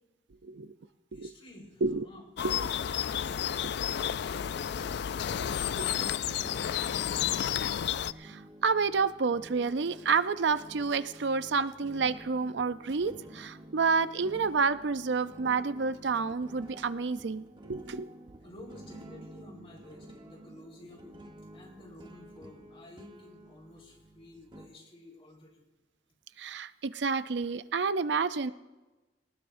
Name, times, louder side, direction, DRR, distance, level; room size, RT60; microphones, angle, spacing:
voice 1, 0.4-0.7 1.1-1.3 1.8-2.1 2.4-2.7 5.8-5.9 8.2-18.1 26.4-28.5, right 5 dB, 70° right, 13 dB, 0.5 m, -29 dB
voice 2, 1.1-2.2 2.5-7.5 18.4-21.2 21.5-25.6, left 1 dB, 30° left, -1 dB, 4.3 m, -52 dB
sound 1, 2.4-8.1, left 9 dB, 65° left, 0.3 m, -31 dB
sound 2, 6.3-24.7, right 1 dB, 25° right, 1.1 m, -51 dB
19.5 x 19.0 x 2.6 m, 1.1 s
head